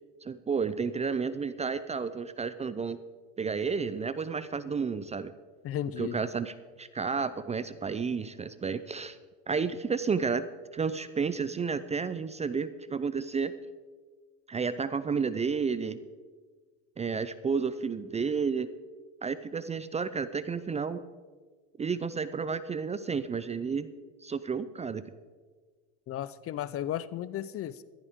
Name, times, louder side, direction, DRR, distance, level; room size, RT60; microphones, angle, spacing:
voice 1, 0.2-3.0 3.4-5.3 6.0-9.2 9.5-10.4 10.7-13.5 14.5-16.0 17.0-18.7 19.2-21.0 21.8-23.9 24.2-25.0, right 5 dB, 15° right, 14 dB, 0.5 m, -31 dB
voice 2, 5.6-6.2 26.1-27.8, left 11 dB, 35° left, 17 dB, 0.5 m, -34 dB
15.0 x 14.5 x 3.7 m, 1.4 s
supercardioid pair, 100°, 39 cm